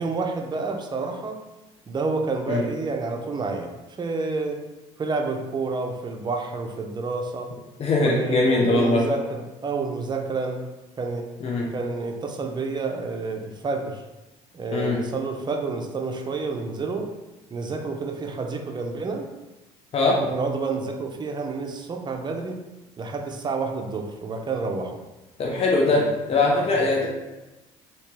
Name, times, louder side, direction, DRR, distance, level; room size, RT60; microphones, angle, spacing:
voice 1, 0.0-1.4 1.9-4.6 5.0-7.5 8.0-10.6 11.0-11.3 11.7-14.0 14.5-17.1 17.5-19.3 20.3-22.6 23.0-25.0 25.9-26.1 26.5-27.0, right 3 dB, 30° right, 4 dB, 0.5 m, -29 dB
voice 2, 7.8-9.0 11.4-11.7 14.7-15.0 19.9-20.2 25.4-26.0 26.3-27.1, left 3 dB, 40° left, -2 dB, 0.7 m, -21 dB
3.2 x 2.8 x 2.9 m, 1.1 s
supercardioid pair, 70°, 15 cm